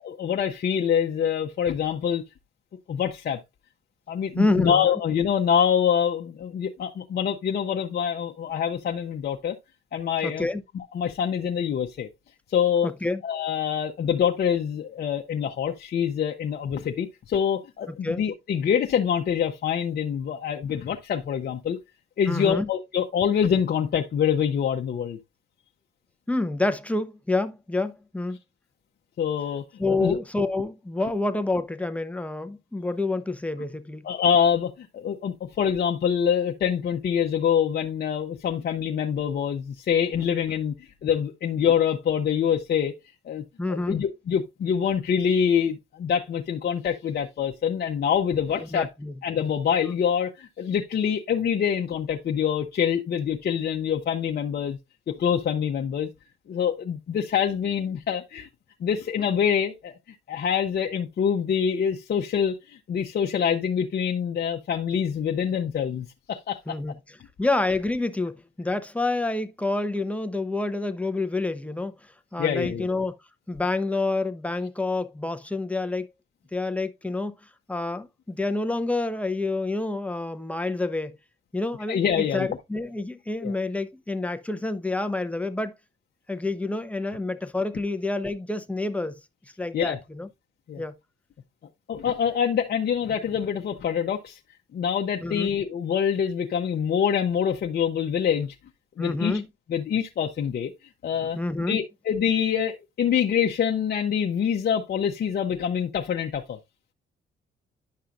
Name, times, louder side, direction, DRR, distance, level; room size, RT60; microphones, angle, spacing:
voice 1, 0.0-2.2 2.9-3.4 4.1-9.6 9.9-10.5 10.7-12.1 12.5-12.9 13.2-21.8 22.2-25.2 29.2-30.2 34.0-42.9 43.2-43.4 43.7-48.9 49.2-54.8 55.2-56.1 56.5-58.5 58.8-59.9 60.3-66.6 72.4-72.8 81.9-82.5 83.4-83.5 89.7-90.0 90.7-90.8 91.9-94.4 94.7-98.5 99.0-99.4 99.7-100.7 101.0-101.4 101.7-106.6, left 8 dB, 55° left, 0.8 m, -25 dB
voice 2, 4.4-4.9 10.2-10.6 12.8-13.2 17.9-18.2 22.3-22.7 26.3-28.4 29.8-34.0 43.6-44.0 48.6-49.1 66.7-73.1 73.5-76.1 76.5-77.4 77.7-81.2 81.5-85.8 86.3-89.1 89.6-90.3 90.8-90.9 95.2-95.5 99.0-99.5 101.4-101.8, left 2 dB, 5° left, 0.8 m, -28 dB
10.5 x 5.6 x 2.4 m
cardioid pair, 90°, 20 cm